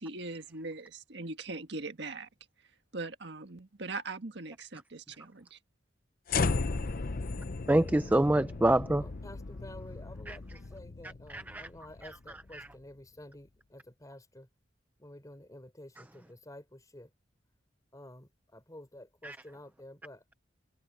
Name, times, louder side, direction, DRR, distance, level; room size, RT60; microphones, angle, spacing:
voice 1, 0.0-2.3 2.9-5.6, right 3 dB, 65° right, 1.7 m, -40 dB
sound 1, 6.3-12.6, left 3 dB, 50° left, 0.7 m, -35 dB
voice 2, 7.7-9.0 10.3-10.4 11.3-11.6 12.5-12.7 19.2-19.4, right 1 dB, 10° right, 0.4 m, -26 dB
voice 3, 9.0-14.5 15.0-17.1 17.9-20.4, left 1 dB, 20° left, 3.6 m, -51 dB
head